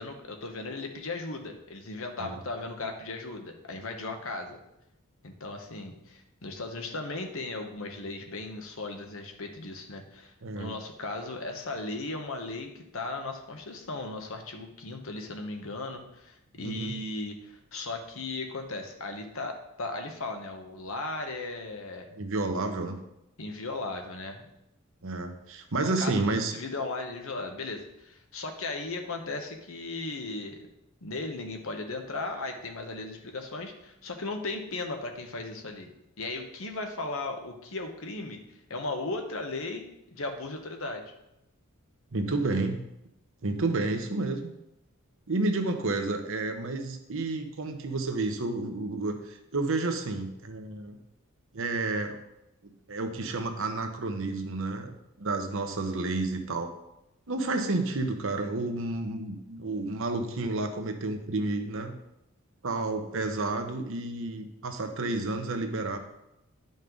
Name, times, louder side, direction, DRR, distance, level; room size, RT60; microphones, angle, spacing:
voice 1, 0.0-4.6 5.2-22.1 23.4-24.5 26.0-30.6 31.0-35.9 36.2-38.4 38.7-41.1, left 2 dB, 65° left, 4 dB, 1.1 m, -36 dB
voice 2, 10.4-10.7 16.6-16.9 22.1-23.0 25.0-26.5 42.1-42.8 43.4-44.5 45.3-51.0 51.5-52.2 52.9-56.7 57.3-61.9 62.6-66.0, right 2 dB, 65° right, 6 dB, 1.0 m, -30 dB
11.0 x 5.3 x 3.9 m, 0.87 s
head